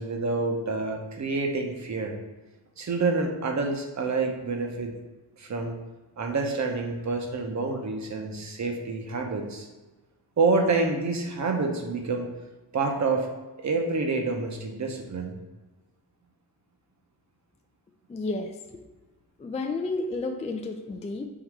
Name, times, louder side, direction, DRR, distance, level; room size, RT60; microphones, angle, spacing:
voice 1, 0.0-2.2 2.8-4.9 5.4-5.7 6.2-9.7 10.4-12.3 12.7-13.3 13.6-15.4, right 3 dB, 45° right, 3 dB, 0.8 m, -27 dB
voice 2, 18.1-18.8 19.4-21.3, left 3 dB, 20° left, 4 dB, 0.3 m, -31 dB
3.8 x 2.7 x 4.6 m, 1.2 s
cardioid pair, 75°, 40 cm